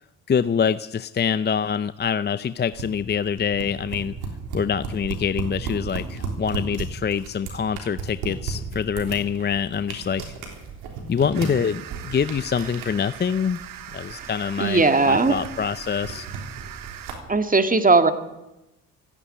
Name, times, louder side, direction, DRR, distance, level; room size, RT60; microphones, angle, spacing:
voice 1, 0.3-4.1 4.5-10.2 11.1-13.6 13.9-16.3, left 7 dB, 30° left, 14 dB, 0.6 m, -25 dB
sound 1, 2.7-17.1, right 5 dB, 85° right, 3.6 m, -35 dB
sound 2, 11.3-17.2, right 10 dB, 65° right, 1.1 m, -40 dB
voice 2, 14.6-15.4 17.3-18.1, right 3 dB, 20° right, 8 dB, 1.9 m, -18 dB
14.5 x 9.9 x 9.9 m, 0.94 s
supercardioid pair, 55°, 37 cm